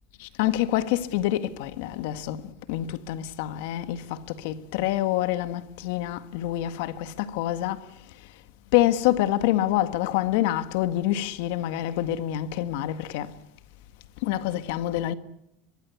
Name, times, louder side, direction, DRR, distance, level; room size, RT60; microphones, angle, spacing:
voice 1, 0.2-8.4 8.7-13.4 14.2-15.1, left 13 dB, 75° left, 1.7 m, -27 dB
23.5 x 21.5 x 8.4 m
supercardioid pair, 120°, 0 cm